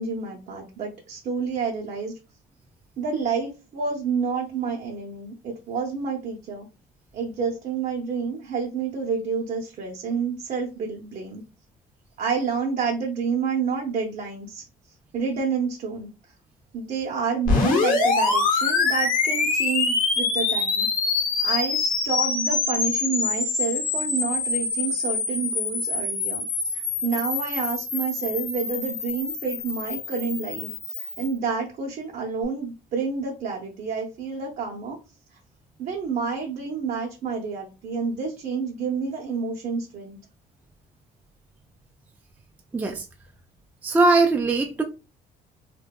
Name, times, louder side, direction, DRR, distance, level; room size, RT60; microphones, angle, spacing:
voice 1, 0.0-2.2 3.0-6.7 7.1-11.4 12.2-14.6 15.1-16.1 16.7-20.9 21.4-26.4 26.7-35.0 35.8-40.2, right 5 dB, 55° right, 0.6 m, -29 dB
sound 1, 17.5-31.3, left 4 dB, 50° left, 0.8 m, -25 dB
voice 2, 42.7-43.1 43.8-44.8, right 3 dB, 10° right, 0.3 m, -20 dB
2.6 x 2.1 x 2.2 m
cardioid pair, 110°, 17 cm